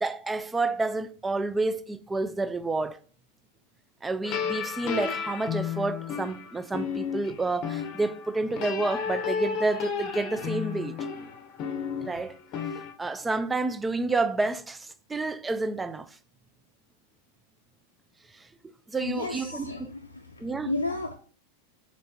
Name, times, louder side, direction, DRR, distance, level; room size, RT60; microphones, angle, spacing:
voice 1, 0.0-3.0 4.0-11.0 12.0-12.4 13.0-16.1 18.9-19.9 20.4-20.7, right 3 dB, 10° right, 0.3 m, -29 dB
sound 1, 4.2-12.9, left 7 dB, 40° left, 0.7 m, -33 dB
voice 2, 19.0-21.2, left 2 dB, 85° left, 0.4 m, -33 dB
4.3 x 3.1 x 3.9 m
figure-of-eight pair, 90°, 0 cm